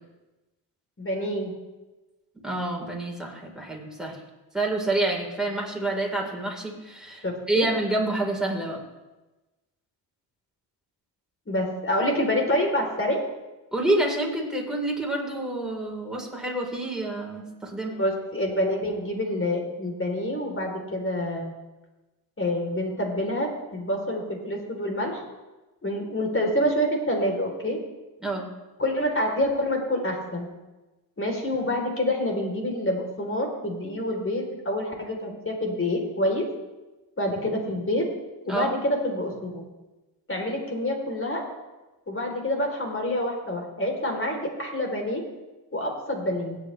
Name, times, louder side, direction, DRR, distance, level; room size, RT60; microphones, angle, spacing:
voice 1, 1.0-1.5 7.2-7.7 11.5-13.2 17.9-21.5 22.4-25.2 25.8-27.8 28.8-30.5 31.2-36.5 37.2-38.0 38.5-39.7 40.3-41.4 42.1-45.2 45.7-46.6, left 1 dB, 25° left, 2 dB, 3.5 m, -27 dB
voice 2, 2.4-4.2 4.5-8.8 13.7-18.0 28.2-28.5 38.5-38.7, right 2 dB, ahead, -2 dB, 3.9 m, -28 dB
17.0 x 8.6 x 3.3 m, 1.1 s
supercardioid pair, 50°, 48 cm